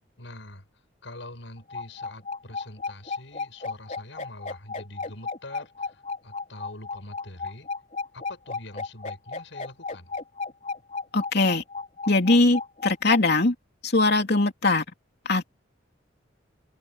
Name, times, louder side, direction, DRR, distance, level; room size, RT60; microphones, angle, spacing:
voice 1, 0.2-0.6 1.0-7.7 8.1-10.2, left 1 dB, 75° left, 6.8 m, -44 dB
sound 1, 1.6-13.2, left 4 dB, 40° left, 3.9 m, -33 dB
voice 2, 11.1-11.6 12.1-13.5 13.8-14.8 15.2-15.5, left 2 dB, 60° left, 3.0 m, -21 dB
head